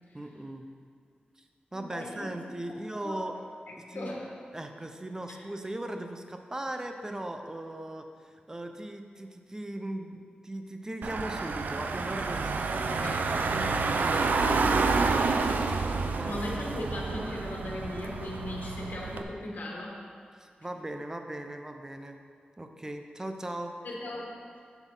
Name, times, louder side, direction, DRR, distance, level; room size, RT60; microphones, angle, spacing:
voice 1, 0.1-0.7 1.4-1.5 1.7-3.3 3.9-4.2 4.5-13.1 13.5-16.4 16.8-17.2 20.4-22.2 22.6-23.7, right 1 dB, 20° right, 5 dB, 0.7 m, -39 dB
voice 2, 1.7-2.3 2.7-3.3 3.7-4.3 12.9-13.2 16.2-20.1 23.8-24.4, left 1 dB, 75° left, -3 dB, 1.5 m, -38 dB
Car / Engine, 11.0-19.2, right 4 dB, 75° right, 0.5 m, -29 dB
8.2 x 7.7 x 3.9 m, 2.3 s
wide cardioid pair, 90°, 3 cm